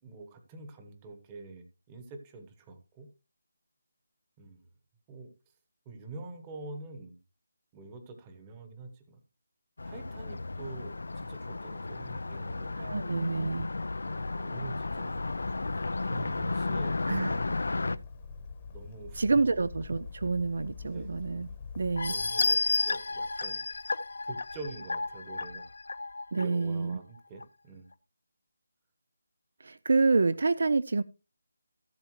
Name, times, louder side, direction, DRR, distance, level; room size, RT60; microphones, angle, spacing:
voice 1, 0.0-3.1 4.4-4.6 5.1-5.3 5.8-7.2 7.7-9.2 9.8-13.0 14.1-15.3 16.0-17.4 18.7-19.2 20.8-21.1 22.1-23.8 24.2-25.7 26.4-27.9, right 3 dB, 15° right, 1.1 m, -46 dB
Car passing by, 9.8-18.0, left 3 dB, 80° left, 0.5 m, -34 dB
voice 2, 12.8-13.7 17.1-17.4 19.2-21.5 21.8-22.2 26.3-27.0 29.6-31.0, right 3 dB, 55° right, 0.4 m, -27 dB
Bird, 14.7-22.3, left 4 dB, 20° left, 1.1 m, -45 dB
sound 1, 22.0-26.4 26.9-27.0 27.4-27.5, left 3 dB, 60° left, 0.8 m, -31 dB
14.5 x 6.9 x 3.1 m
figure-of-eight pair, 175°, 0 cm